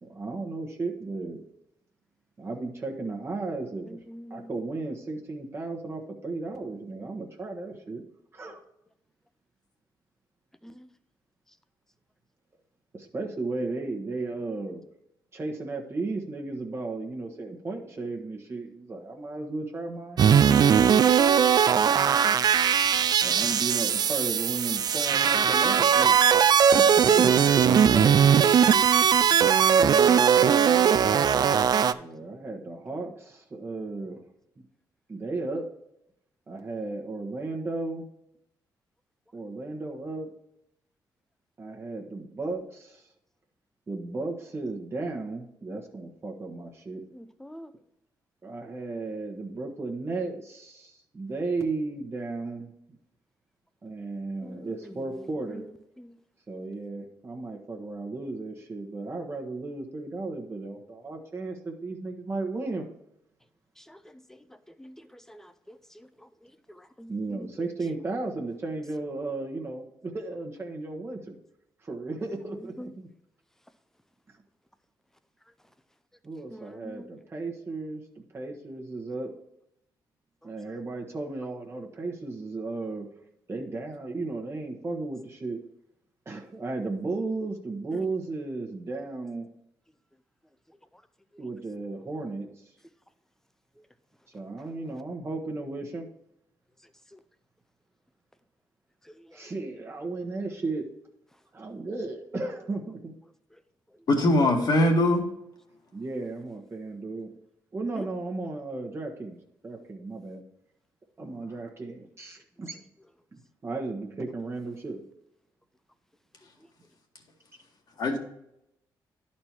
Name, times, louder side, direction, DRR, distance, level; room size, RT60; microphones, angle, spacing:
voice 1, 0.0-1.4 2.4-4.0 4.3-8.0 8.3-8.6 12.9-14.8 15.3-20.4 23.2-26.1 26.8-28.5 31.9-34.2 34.6-34.7 35.1-35.7 36.5-38.1 39.3-40.3 41.6-43.1 43.9-47.0 48.4-52.7 53.8-55.6 56.5-62.8 67.1-71.4 71.8-73.1 76.2-79.3 80.4-83.1 83.5-85.6 86.2-89.5 91.4-92.7 94.3-96.1 99.3-100.9 101.5-103.2 105.9-107.3 107.7-109.4 109.6-110.4 111.2-112.8 113.3-115.0, right 3 dB, 35° right, 0 dB, 1.2 m, -34 dB
voice 2, 4.1-4.5 10.6-10.9 47.1-47.7 54.4-54.7 56.0-56.1 63.9-64.0 64.8-64.9 65.3-65.8 66.7-67.1 72.8-72.9 76.5-77.1 108.0-108.1, equal, 5° left, 11 dB, 0.6 m, -44 dB
sound 1, 20.2-31.9, right 8 dB, 55° right, 0.4 m, -20 dB
voice 3, 104.1-105.2 118.0-118.2, left 1 dB, 55° left, 2 dB, 1.8 m, -21 dB
11.0 x 4.3 x 4.5 m, 0.79 s
cardioid pair, 90°, 8 cm